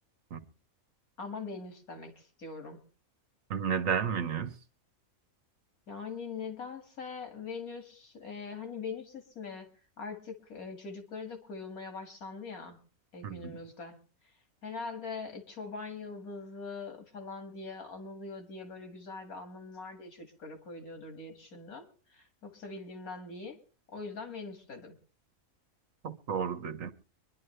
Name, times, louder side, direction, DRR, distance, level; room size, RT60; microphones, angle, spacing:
voice 1, 1.2-2.8 5.9-9.7 10.0-12.8 13.1-14.0 14.6-23.6 23.9-25.0, left 4 dB, 85° left, 2.6 m, -42 dB
voice 2, 3.5-4.5 13.2-13.6 26.0-26.9, right 7 dB, 70° right, 1.4 m, -32 dB
24.0 x 11.0 x 3.3 m
omnidirectional pair, 1.5 m